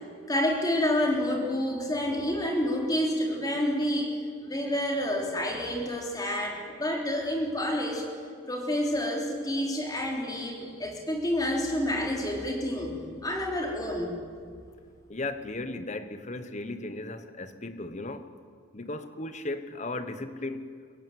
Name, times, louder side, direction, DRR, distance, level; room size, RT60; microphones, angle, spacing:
voice 1, 0.3-4.1 4.4-8.0 8.5-14.2, left 1 dB, 20° left, 0 dB, 3.6 m, -29 dB
voice 2, 15.1-18.3 18.7-20.7, left 2 dB, 35° left, 10 dB, 1.1 m, -36 dB
23.0 x 16.5 x 9.4 m, 2.1 s
head